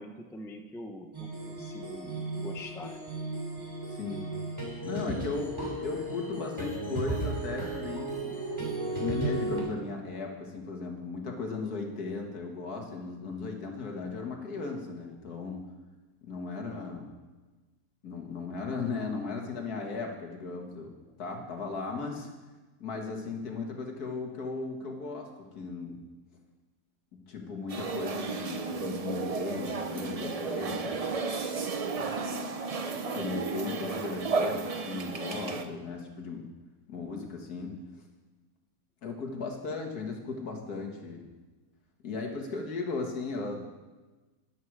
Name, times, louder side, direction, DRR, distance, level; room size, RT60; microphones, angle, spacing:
voice 1, 0.0-3.0 21.1-21.2, left 1 dB, 5° left, 4 dB, 0.4 m, -44 dB
sound 1, 1.1-9.6, right 2 dB, 15° right, 2.5 m, -35 dB
voice 2, 3.9-4.2 4.8-8.4 9.0-15.6 16.2-17.1 18.0-20.9 21.2-22.3 22.8-26.0 27.3-31.1 32.0-32.2 33.1-36.4 36.9-37.7 39.0-41.3 42.0-43.7, left 4 dB, 75° left, 2 dB, 2.1 m, -36 dB
sound 2, 27.7-35.6, right 4 dB, 70° right, 0.3 m, -33 dB
12.5 x 10.5 x 4.8 m, 1.2 s
omnidirectional pair, 1.7 m